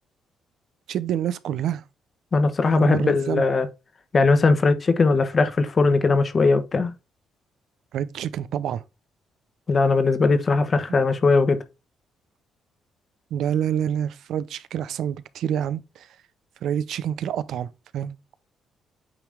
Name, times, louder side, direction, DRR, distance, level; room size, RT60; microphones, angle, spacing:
voice 1, 0.9-1.8 2.7-3.5 7.9-8.8 13.3-16.1 16.6-18.2, right 9 dB, 75° right, 0.6 m, -27 dB
voice 2, 2.3-3.7 4.1-6.9 9.7-11.6, left 3 dB, 40° left, 1.2 m, -19 dB
8.9 x 3.0 x 3.5 m
cardioid pair, 90°, 0 cm